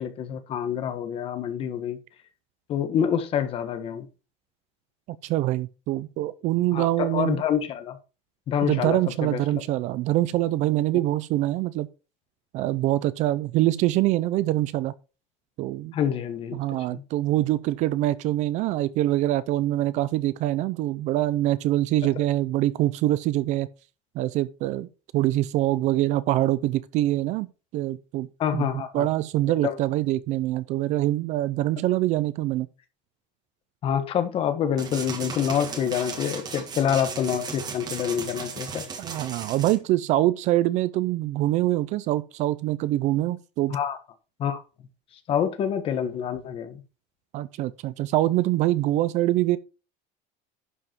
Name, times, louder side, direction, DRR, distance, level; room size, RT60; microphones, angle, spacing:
voice 1, 0.0-2.0 2.7-4.1 6.7-8.0 8.5-9.6 15.9-16.6 16.9-17.0 28.4-29.1 29.6-29.7 33.8-38.8 43.7-44.0 44.4-44.6 45.3-46.8, left 8 dB, 35° left, 1.3 m, -27 dB
voice 2, 5.2-7.4 8.6-11.9 12.5-14.9 15.6-16.0 16.5-23.7 24.1-27.5 27.7-28.3 28.5-32.7 39.0-43.8 47.3-49.6, right 15 dB, 45° right, 0.5 m, -24 dB
sound 1, 34.8-39.8, right 5 dB, 25° right, 1.6 m, -36 dB
11.0 x 5.5 x 4.5 m
cardioid pair, 170°, 17 cm